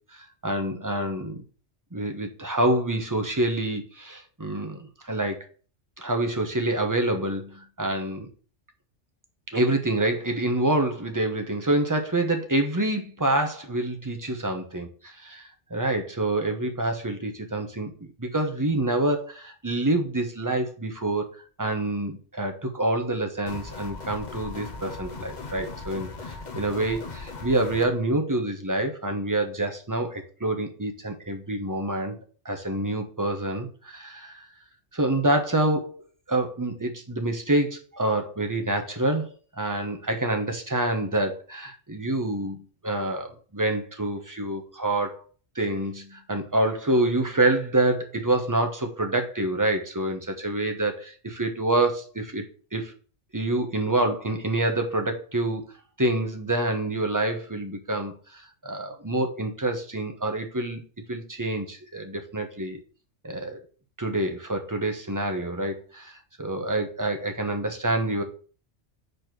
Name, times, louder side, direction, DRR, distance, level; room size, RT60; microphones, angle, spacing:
voice 1, 0.1-1.4 1.9-5.5 6.0-8.3 9.5-15.4 15.7-32.2 32.4-34.4 34.9-36.0 36.3-39.3 39.6-45.2 45.5-52.4 52.7-52.9 53.3-55.7 56.0-60.8 61.1-62.8 63.2-63.6 64.0-68.2, right 1 dB, 15° right, 4 dB, 1.0 m, -27 dB
sound 1, 23.5-27.9, left 4 dB, 40° left, 1.1 m, -38 dB
5.2 x 4.3 x 6.0 m, 0.39 s
omnidirectional pair, 1.2 m